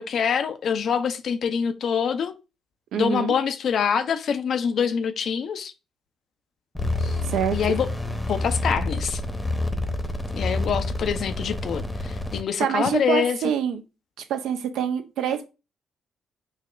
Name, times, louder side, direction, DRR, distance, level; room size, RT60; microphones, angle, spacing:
voice 1, 0.0-2.3 2.9-5.7 7.0-7.2 7.5-7.9 8.3-9.2 10.3-13.4, left 7 dB, 55° left, 0.4 m, -25 dB
voice 2, 2.9-3.3 7.2-7.6 12.6-13.8 14.3-15.5, right 8 dB, 65° right, 0.3 m, -25 dB
sound 1, 6.7-12.4, left 2 dB, 5° left, 0.7 m, -28 dB
6.1 x 2.0 x 2.4 m
figure-of-eight pair, 45°, 0 cm